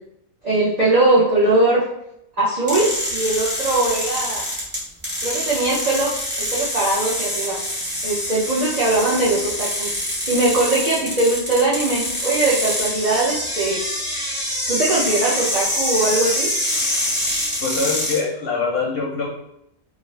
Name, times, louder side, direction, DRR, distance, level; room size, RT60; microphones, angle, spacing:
voice 1, 0.4-1.8 2.4-4.4 5.2-7.6 8.0-10.0 10.3-13.8 14.7-16.5, right 2 dB, 55° right, -8 dB, 0.4 m, -20 dB
sound 1, 2.7-18.2, equal, 10° right, 0.8 m, -25 dB
voice 2, 17.6-19.3, left 4 dB, 60° left, -3 dB, 0.7 m, -23 dB
2.4 x 2.3 x 3.1 m, 0.79 s
omnidirectional pair, 1.4 m